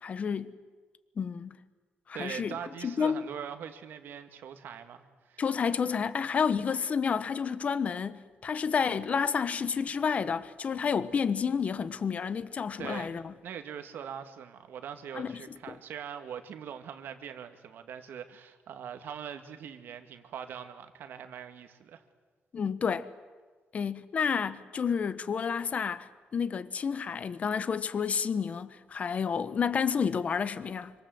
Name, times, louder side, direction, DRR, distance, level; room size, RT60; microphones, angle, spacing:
voice 1, 0.0-0.5 1.2-1.6 2.1-2.6 2.8-3.2 5.4-13.3 15.1-15.8 22.5-23.1 23.7-30.9, left 6 dB, 40° left, 1.1 m, -30 dB
voice 2, 2.1-5.4 12.8-22.0, right 8 dB, 80° right, 2.1 m, -42 dB
26.5 x 25.5 x 7.8 m
cardioid pair, 145°, 4 cm